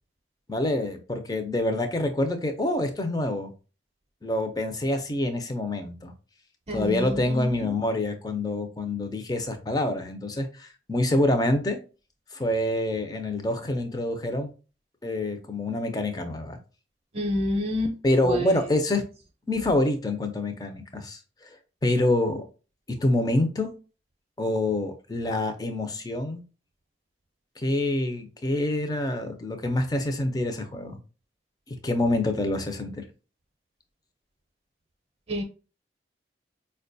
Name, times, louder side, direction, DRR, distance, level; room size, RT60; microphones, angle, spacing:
voice 1, 0.5-3.5 4.2-6.1 6.7-11.8 12.3-14.5 15.0-16.6 18.0-19.0 19.5-21.5 21.8-22.4 23.0-23.7 24.4-26.4 27.6-31.0 31.7-33.0, left 1 dB, 20° left, 0.5 m, -26 dB
voice 2, 6.7-7.7 17.1-17.9 18.2-18.6 35.3-35.4, equal, 35° right, 0.5 m, -28 dB
4.5 x 2.2 x 2.6 m
head